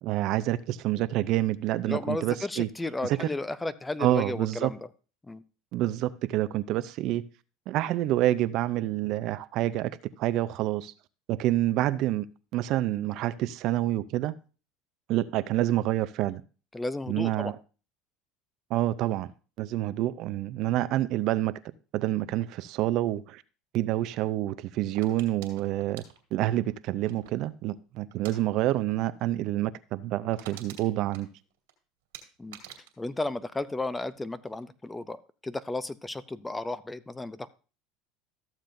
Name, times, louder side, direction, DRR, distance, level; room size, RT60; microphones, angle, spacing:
voice 1, 0.0-2.7 3.0-3.3 4.0-4.7 5.7-7.2 7.7-9.9 10.2-10.9 11.3-12.3 12.5-14.3 15.1-16.4 17.1-17.5 18.7-19.3 19.6-21.5 21.9-23.4 23.7-26.0 26.3-31.3, right 14 dB, 60° right, 0.5 m, -27 dB
voice 2, 1.9-4.8 5.3-5.4 16.7-17.5 32.4-32.6 33.0-37.5, left 2 dB, 10° left, 0.5 m, -33 dB
sound 1, 24.9-27.5 28.1-28.4 28.7-28.9 29.2-29.3 29.7-29.8 30.0-31.7 32.1-34.2 34.5-34.9, right 10 dB, 90° right, 2.1 m, -48 dB
13.5 x 7.3 x 2.6 m
supercardioid pair, 105°, 0 cm